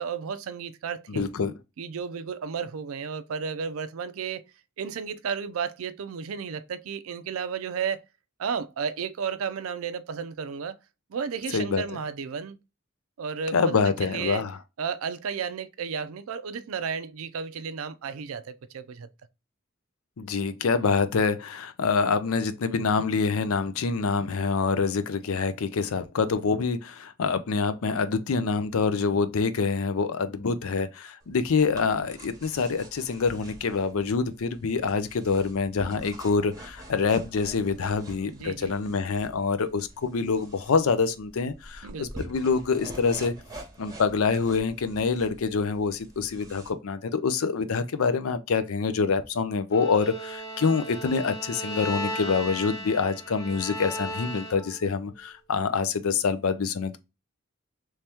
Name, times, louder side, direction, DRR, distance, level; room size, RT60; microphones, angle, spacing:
voice 1, 0.0-1.3 1.8-4.4 4.8-8.0 8.4-10.8 11.1-12.6 13.2-14.4 14.8-19.1 38.2-38.7 41.8-42.3, right 6 dB, 85° right, 0.4 m, -33 dB
voice 2, 1.1-1.5 11.5-11.8 13.5-14.6 20.2-43.3 43.8-57.0, left 5 dB, 90° left, 0.5 m, -26 dB
sound 1, 31.2-46.7, right 1 dB, 15° right, 0.9 m, -46 dB
Bowed string instrument, 49.7-54.9, equal, 15° left, 0.8 m, -36 dB
3.2 x 2.8 x 3.4 m
head